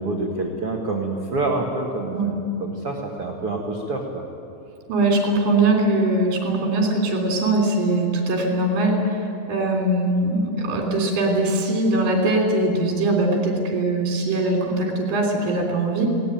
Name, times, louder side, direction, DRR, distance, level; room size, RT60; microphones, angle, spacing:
voice 1, 0.0-4.2, right 2 dB, 80° right, -1 dB, 1.3 m, -27 dB
voice 2, 4.9-16.1, right 2 dB, 45° right, 0 dB, 4.3 m, -21 dB
19.5 x 18.5 x 9.2 m, 2.6 s
omnidirectional pair, 5.6 m